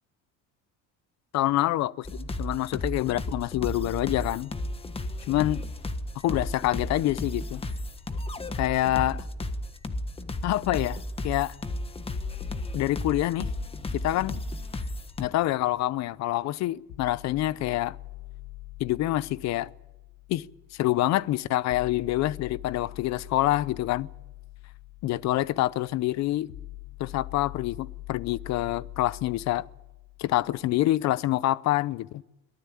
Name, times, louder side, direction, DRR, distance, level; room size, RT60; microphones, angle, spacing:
voice 1, 1.3-4.5 5.3-5.6 6.2-7.6 8.5-9.2 10.4-11.6 12.7-13.5 14.0-14.4 15.2-18.0 18.8-19.7 20.3-20.5 20.8-24.1 25.0-26.5 27.0-29.6 30.2-32.2, left 15 dB, 55° left, 0.7 m, -26 dB
sound 1, 2.0-15.3, left 1 dB, 15° left, 1.4 m, -34 dB
sound 2, 12.1-16.1 16.9-30.9, left 17 dB, 80° left, 1.5 m, -45 dB
23.0 x 19.0 x 8.6 m
cardioid pair, 155°, 33 cm